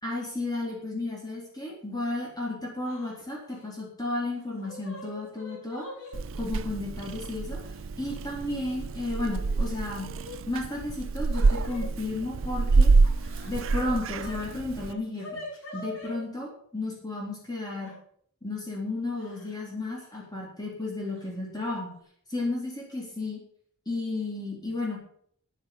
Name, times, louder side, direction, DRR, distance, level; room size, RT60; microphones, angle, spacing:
voice 1, 0.0-5.9 6.4-10.1 10.5-12.9 13.4-15.3 15.7-17.9 18.4-21.9 22.3-23.4 23.9-25.0, left 2 dB, 20° left, -3 dB, 4.0 m, -33 dB
Yell / Crying sobbing, 2.8-3.1 3.4-3.6 4.4-6.2 7.1-7.2 8.2-8.8 9.1-10.4 11.6-11.9 13.0-14.4 14.7-16.2 17.8-17.9 19.2-19.6 19.9-20.0 21.2-21.3 21.7-22.0, left 1 dB, 90° left, 7.4 m, -44 dB
Purr / Meow, 6.1-14.9, right 3 dB, 70° right, 0.5 m, -27 dB
10.5 x 9.9 x 7.2 m, 0.62 s
head